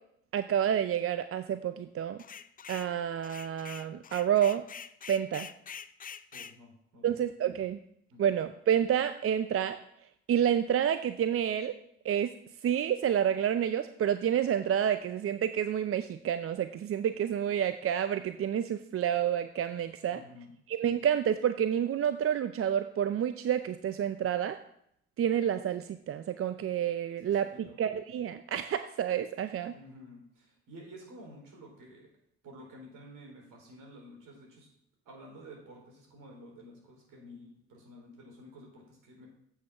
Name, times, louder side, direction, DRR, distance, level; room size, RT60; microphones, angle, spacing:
voice 1, 0.3-2.2 2.7-4.6 5.1-5.5 7.0-7.8 8.2-9.8 10.3-11.7 12.0-12.3 12.6-20.2 20.7-24.6 25.2-29.7, right 9 dB, 40° right, 10 dB, 0.5 m, -29 dB
sound 1, 2.2-2.9 3.2-6.6, left 7 dB, 25° left, 0.5 m, -45 dB
voice 2, 6.3-7.1 8.1-8.3 20.1-20.5 27.3-27.8 29.7-32.1 32.4-34.7 35.1-39.3, equal, 65° right, 0 dB, 4.1 m, -51 dB
8.3 x 6.3 x 5.9 m, 0.74 s
hypercardioid pair, 60°, 34 cm